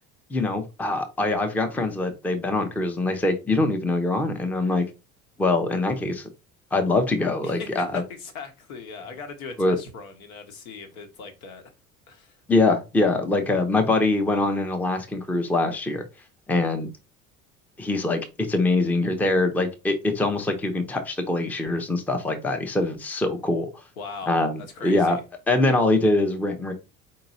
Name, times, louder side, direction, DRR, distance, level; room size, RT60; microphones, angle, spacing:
voice 1, 0.3-4.8 5.4-6.3 6.7-8.0 9.6-9.8 12.5-16.0 16.5-16.9 17.8-23.7 24.3-25.2 25.5-26.7, left 2 dB, 5° left, 0.6 m, -23 dB
voice 2, 7.4-11.7 12.1-12.4 24.0-25.2, left 4 dB, 65° left, 1.2 m, -39 dB
4.4 x 3.8 x 2.6 m
figure-of-eight pair, 65°, 44 cm